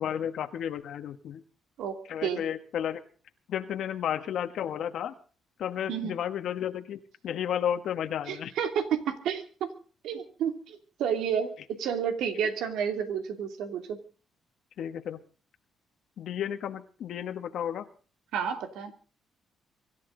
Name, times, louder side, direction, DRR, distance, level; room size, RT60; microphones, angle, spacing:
voice 1, 0.0-1.4 2.1-3.0 3.5-5.1 5.6-8.5 14.8-15.2 16.2-17.9, left 9 dB, 70° left, 7 dB, 1.4 m, -32 dB
voice 2, 8.3-9.7 10.0-14.0 18.3-18.9, right 8 dB, 85° right, 7 dB, 2.6 m, -30 dB
24.5 x 13.0 x 3.9 m, 0.39 s
cardioid pair, 90°, 0 cm